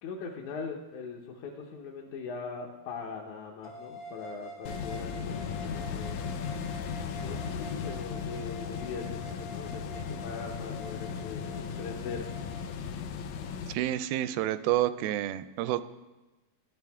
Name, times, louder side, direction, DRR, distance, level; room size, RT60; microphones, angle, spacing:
voice 1, 0.0-6.2 7.2-12.3, left 5 dB, 70° left, -1 dB, 2.0 m, -41 dB
sound 1, 3.6-12.7, left 1 dB, 40° left, 0.5 m, -46 dB
sound 2, 4.7-13.7, left 6 dB, 90° left, 1.6 m, -37 dB
voice 2, 13.7-15.8, right 13 dB, 85° right, 13 dB, 2.4 m, -29 dB
16.0 x 10.5 x 3.5 m, 1.1 s
omnidirectional pair, 4.2 m